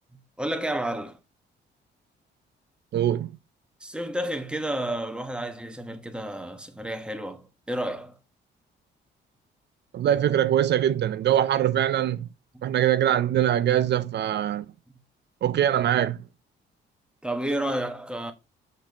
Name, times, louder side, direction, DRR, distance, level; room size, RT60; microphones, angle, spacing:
voice 1, 0.4-1.2 3.8-8.2 12.5-12.7 17.2-18.3, right 1 dB, 5° right, 1.2 m, -31 dB
voice 2, 2.9-3.4 9.9-12.3 12.6-14.6 15.4-16.2, right 11 dB, 60° right, 0.5 m, -23 dB
6.8 x 5.9 x 2.9 m
cardioid pair, 90°, 20 cm